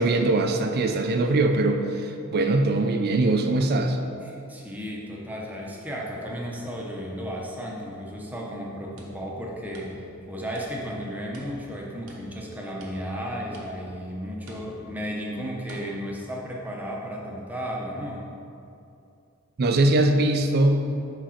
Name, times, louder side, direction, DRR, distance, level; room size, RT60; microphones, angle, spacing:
voice 1, 0.0-4.0 19.6-20.9, right 2 dB, 45° right, 5 dB, 0.4 m, -22 dB
voice 2, 4.2-10.0 10.3-18.2, equal, 10° right, -3 dB, 0.8 m, -34 dB
sound 1, 9.0-10.3 10.6-11.0 11.3-12.5 12.8-13.3 13.5-14.0 14.5-15.0 15.7-15.9, right 1 dB, 90° right, 1.0 m, -47 dB
5.0 x 4.0 x 5.6 m, 2.6 s
head